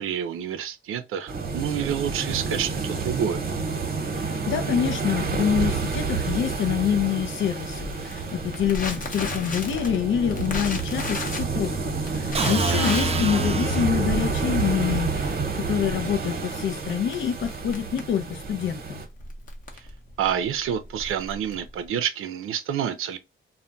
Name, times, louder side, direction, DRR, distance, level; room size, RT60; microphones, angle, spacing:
voice 1, 0.0-3.4 12.5-13.0 20.2-23.2, right 9 dB, 90° right, 0.4 m, -28 dB
sound 1, 1.3-19.1, right 4 dB, 45° right, 0.8 m, -29 dB
voice 2, 4.1-19.0, left 9 dB, 65° left, 0.4 m, -26 dB
Crackle, 7.7-21.9, left 2 dB, 40° left, 0.8 m, -36 dB
sound 2, 12.3-14.3, right 2 dB, 30° right, 0.4 m, -26 dB
2.2 x 2.1 x 3.7 m
cardioid pair, 100°, 21 cm